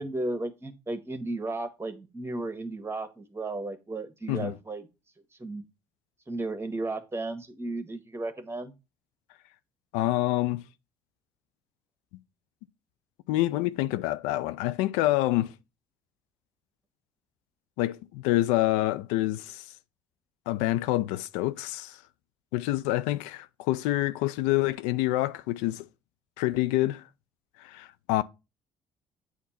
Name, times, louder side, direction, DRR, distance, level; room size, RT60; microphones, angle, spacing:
voice 1, 0.0-4.8 5.4-5.6 6.3-8.7, right 2 dB, 20° right, 1.5 m, -34 dB
voice 2, 9.9-10.6 13.3-15.5 17.8-19.7 20.5-22.0 22.5-25.9 26.4-27.1 27.6-28.2, left 16 dB, 85° left, 0.4 m, -27 dB
8.3 x 2.9 x 5.7 m
hypercardioid pair, 60°, 12 cm